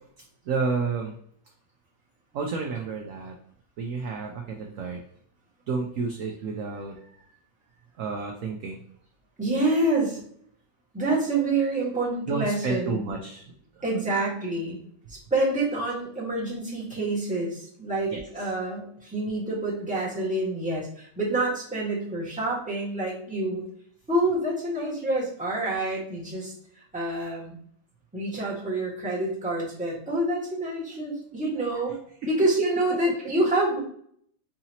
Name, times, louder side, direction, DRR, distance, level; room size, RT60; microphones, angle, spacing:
voice 1, 0.5-1.1 2.3-3.4 3.8-5.0 5.7-7.4 8.0-8.8 12.3-13.4 13.8-13.9 18.1-18.2, right 4 dB, 70° right, 2 dB, 0.8 m, -30 dB
voice 2, 9.4-10.2 10.9-13.0 13.8-14.8 15.1-23.6 24.1-27.6 28.1-31.9 32.3-33.8, right 2 dB, 5° right, -7 dB, 1.3 m, -27 dB
4.8 x 2.8 x 2.8 m, 0.64 s
omnidirectional pair, 1.9 m